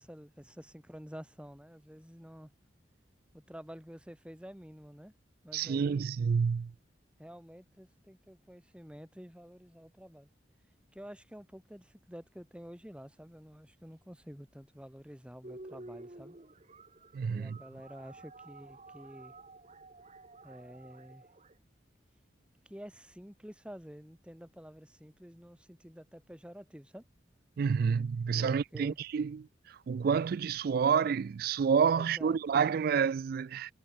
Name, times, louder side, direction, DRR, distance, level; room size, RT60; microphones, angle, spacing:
voice 1, 0.0-2.5 3.3-5.1 5.4-6.1 7.2-10.3 10.9-16.4 17.3-19.3 20.4-21.2 22.6-27.0 28.4-29.0 31.9-32.4, equal, 5° right, 3.0 m, -49 dB
voice 2, 5.5-6.7 17.1-17.6 27.6-29.5 29.9-33.7, right 6 dB, 55° right, 0.3 m, -29 dB
sound 1, 15.4-21.5, right 2 dB, 35° right, 1.8 m, -51 dB
head